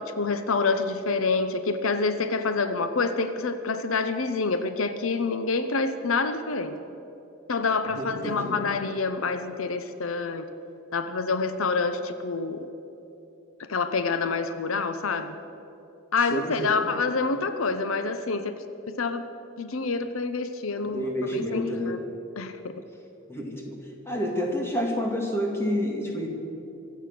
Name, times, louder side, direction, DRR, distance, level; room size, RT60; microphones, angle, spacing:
voice 1, 0.0-6.8 7.5-10.4 10.9-12.7 13.7-15.4 16.1-19.2 19.6-22.0 22.4-22.6, left 4 dB, 80° left, 10 dB, 0.8 m, -27 dB
voice 2, 8.0-8.6 16.3-16.8 20.8-22.0 23.3-23.8 24.1-26.3, equal, 10° left, 0 dB, 2.2 m, -29 dB
25.0 x 8.3 x 6.8 m, 2.9 s
head